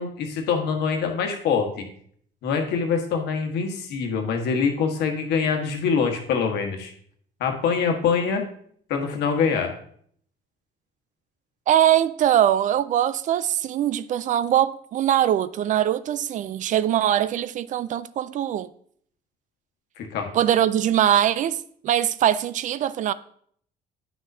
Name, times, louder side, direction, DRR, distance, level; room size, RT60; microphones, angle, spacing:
voice 1, 0.0-1.8 2.4-6.9 7.4-8.4 8.9-9.7 20.0-20.3, left 6 dB, 80° left, 1.4 m, -24 dB
voice 2, 11.7-18.7 20.3-21.6 21.8-23.1, right 11 dB, 50° right, 0.4 m, -22 dB
9.2 x 6.3 x 2.7 m
cardioid pair, 110°, 17 cm